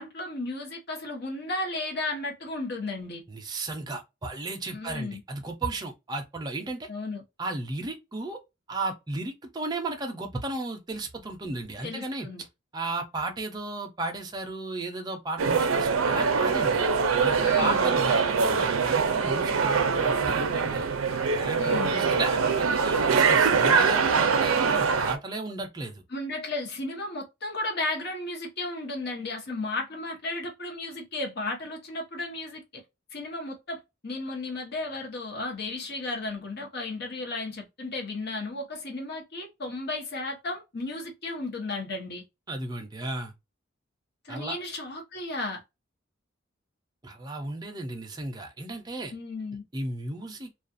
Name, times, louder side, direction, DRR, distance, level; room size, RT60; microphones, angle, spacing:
voice 1, 0.0-3.2 4.7-5.2 6.9-7.2 11.8-12.4 17.4-17.9 21.6-22.0 26.1-32.8 33.1-42.2 44.2-45.6 49.1-49.6, left 2 dB, 55° left, 0.9 m, -34 dB
voice 2, 3.3-6.9 7.4-8.4 8.7-12.3 12.7-16.9 17.2-20.8 21.3-26.0 42.5-43.3 44.3-44.6 47.0-49.1 49.7-50.5, right 2 dB, 20° right, 0.5 m, -34 dB
sound 1, 15.4-25.2, right 5 dB, 85° right, 0.4 m, -23 dB
2.4 x 2.3 x 2.5 m
head